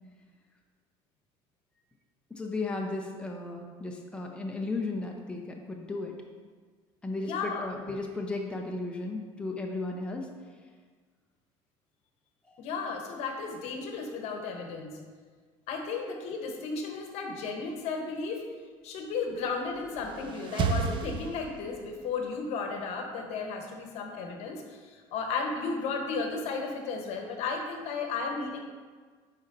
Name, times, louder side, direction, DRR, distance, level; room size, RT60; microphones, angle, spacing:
voice 1, 2.3-6.1 7.0-10.3 12.5-12.6, left 2 dB, 10° left, 1 dB, 0.6 m, -35 dB
voice 2, 7.2-7.7 12.6-15.0 15.7-18.5 18.8-28.6, left 4 dB, 65° left, 3 dB, 1.0 m, -34 dB
sound 1, 19.6-22.0, right 5 dB, 45° right, 0.5 m, -33 dB
9.5 x 4.1 x 2.6 m, 1.5 s
cardioid pair, 110°, 11 cm